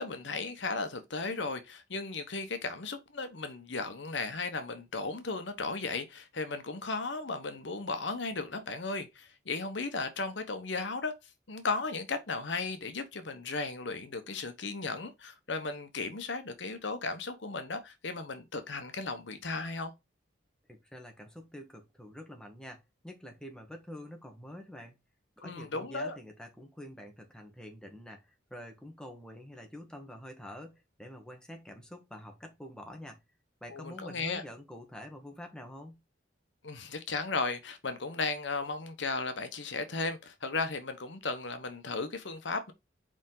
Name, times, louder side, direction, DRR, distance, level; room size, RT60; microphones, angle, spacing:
voice 1, 0.0-11.2 11.5-19.9 25.4-26.2 33.7-34.4 36.6-42.7, left 3 dB, 70° left, 1.0 m, -35 dB
voice 2, 20.7-25.0 25.4-33.2 33.6-36.0, equal, 5° left, 1.5 m, -47 dB
5.1 x 4.9 x 3.9 m
head